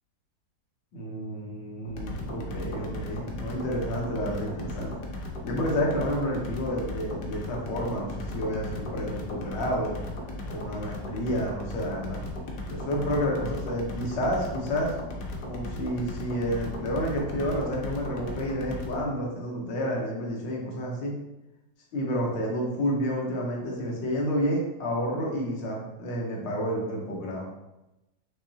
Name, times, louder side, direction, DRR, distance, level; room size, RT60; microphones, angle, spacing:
voice 1, 0.9-5.0 5.4-10.0 10.4-12.2 12.7-14.9 15.5-21.1 21.9-27.5, equal, 75° left, -1 dB, 1.7 m, -30 dB
sound 1, 1.9-19.0, left 2 dB, 60° left, 1.1 m, -36 dB
5.9 x 3.0 x 2.8 m, 0.96 s
omnidirectional pair, 2.0 m